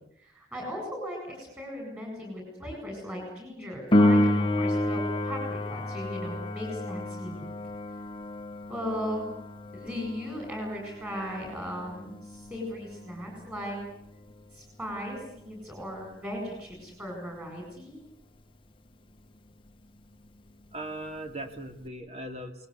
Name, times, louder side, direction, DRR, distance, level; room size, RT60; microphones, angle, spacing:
voice 1, 0.2-7.5 8.7-9.2 9.7-13.8 14.5-18.0, equal, 10° right, 1 dB, 8.0 m, -37 dB
Piano, 3.9-14.3 21.9-22.0, left 1 dB, 25° left, 1.2 m, -29 dB
voice 2, 20.7-22.7, right 1 dB, 35° right, 6 dB, 2.8 m, -39 dB
28.5 x 20.0 x 8.3 m, 0.72 s
head